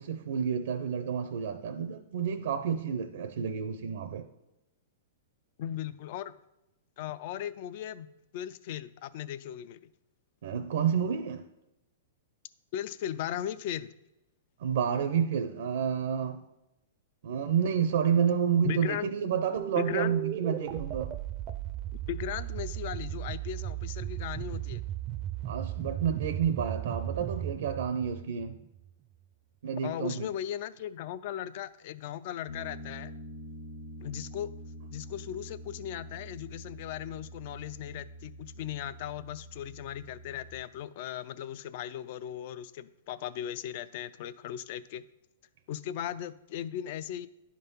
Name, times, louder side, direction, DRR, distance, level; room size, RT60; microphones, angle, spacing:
voice 1, 0.0-4.2 10.4-11.5 14.6-16.4 17.2-21.2 25.4-28.6 29.6-30.3, right 7 dB, 75° right, 0.6 m, -30 dB
voice 2, 5.6-6.4 7.0-9.9 12.7-13.9 18.6-19.1 19.8-20.1 22.1-24.8 29.8-33.1 34.0-34.5 34.9-45.0 45.7-47.3, left 11 dB, 50° left, 0.4 m, -37 dB
sound 1, 19.6-28.9, right 12 dB, 30° right, 0.4 m, -36 dB
Piano, 32.5-40.5, equal, 75° left, 0.9 m, -46 dB
10.5 x 3.7 x 5.5 m
hypercardioid pair, 145°, 0 cm